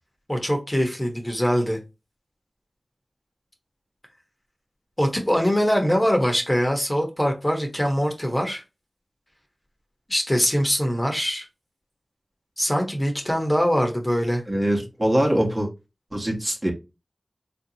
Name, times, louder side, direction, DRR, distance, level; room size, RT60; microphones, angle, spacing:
voice 1, 0.3-1.8 5.0-8.6 10.1-11.5 12.6-14.4, equal, 15° left, 1.0 m, -23 dB
voice 2, 14.5-15.7 16.1-16.7, right 1 dB, 30° right, 1.1 m, -23 dB
3.7 x 2.7 x 2.8 m
wide cardioid pair, 40°, 0 cm